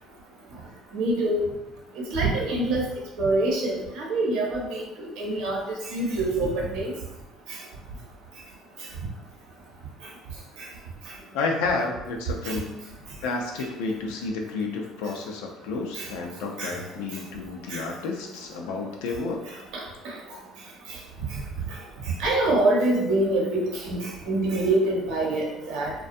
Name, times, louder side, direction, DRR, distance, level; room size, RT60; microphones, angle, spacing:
voice 1, 0.9-1.4 2.0-2.8 3.2-6.9 7.5-7.6 12.4-12.5 16.0-16.1 16.6-16.8 17.7-17.8 19.7-20.2 20.9-21.0 21.3-21.4 21.7-21.8 22.2-25.9, right 2 dB, 75° right, -3 dB, 0.7 m, -25 dB
voice 2, 11.3-12.8 13.2-19.6, left 3 dB, 85° left, 2 dB, 0.4 m, -31 dB
2.5 x 2.2 x 2.5 m, 0.92 s
supercardioid pair, 85°, 0 cm